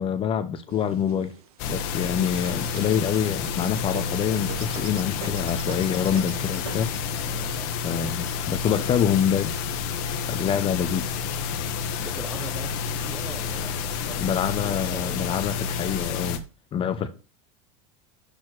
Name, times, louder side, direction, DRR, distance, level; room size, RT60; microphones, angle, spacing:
voice 1, 0.0-1.3 1.7-6.9 7.7-9.6 10.3-11.1 14.2-16.4 16.7-17.1, left 8 dB, 30° left, 0.6 m, -26 dB
sound 1, 0.7-11.0 11.6-12.6 13.0-13.1 13.3-14.0 14.8-14.9 15.5-16.0, right 9 dB, 90° right, 1.0 m, -44 dB
sound 2, 1.6-16.4, left 6 dB, 60° left, 1.1 m, -30 dB
voice 2, 7.2-7.8 12.0-15.3, right 2 dB, 10° right, 0.8 m, -42 dB
6.6 x 4.3 x 5.8 m
supercardioid pair, 130°, 18 cm